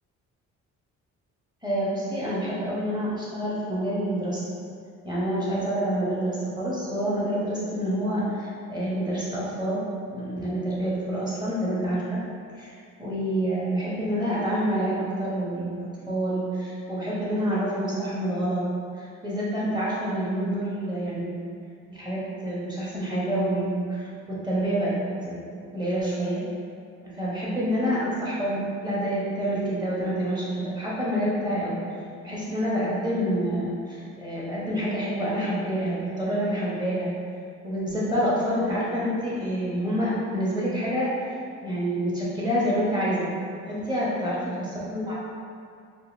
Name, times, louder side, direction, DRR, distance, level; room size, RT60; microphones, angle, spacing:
voice 1, 1.6-4.4 5.0-9.8 10.1-12.2 12.6-18.6 18.9-21.4 21.9-25.0 25.2-25.4 25.7-26.4 27.0-31.8 32.2-37.1 37.6-41.1 41.6-43.3 43.7-45.2, equal, 15° right, -8 dB, 1.2 m, -27 dB
3.9 x 2.5 x 2.7 m, 2.3 s
cardioid pair, 90°, 30 cm